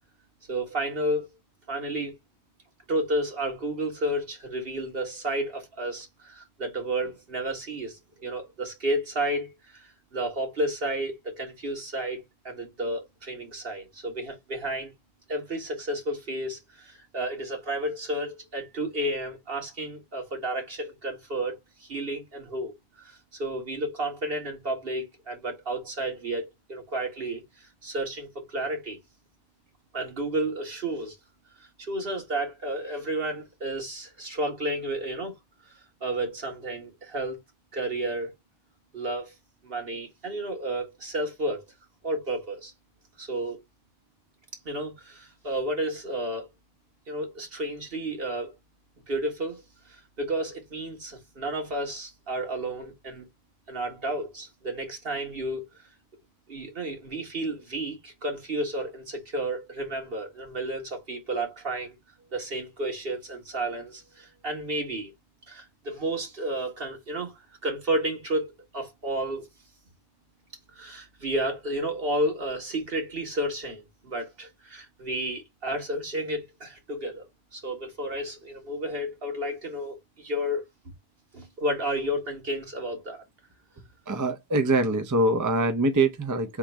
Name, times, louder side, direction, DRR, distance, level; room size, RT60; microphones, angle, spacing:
voice 1, 0.5-1.3 1.7-2.1 2.9-14.9 15.3-29.0 29.9-31.2 31.8-35.3 36.0-37.4 37.7-38.4 38.9-39.3 39.6-41.6 42.0-42.7 43.2-43.6 44.7-46.5 47.1-48.5 49.1-49.6 49.9-53.2 53.7-55.7 56.5-62.0 62.3-65.1 65.5-69.5 70.7-77.3 77.5-80.6 81.3-83.2, right 1 dB, 65° right, 1.9 m, -32 dB
voice 2, 84.1-86.6, right 2 dB, 25° right, 0.5 m, -24 dB
3.7 x 3.0 x 4.5 m
omnidirectional pair, 1.0 m